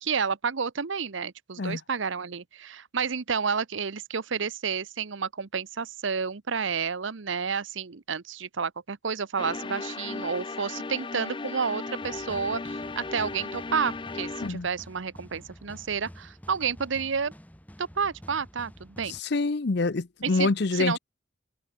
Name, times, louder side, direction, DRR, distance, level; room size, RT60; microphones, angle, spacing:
voice 1, 0.0-17.3 17.8-19.2 20.2-21.0, right 6 dB, 75° right, 0.8 m, -30 dB
sound 1, 9.4-14.5, left 3 dB, 25° left, 0.5 m, -36 dB
sound 2, 12.0-19.2, equal, 10° left, 6.6 m, -49 dB
voice 2, 19.1-21.0, left 3 dB, 55° left, 0.7 m, -26 dB
head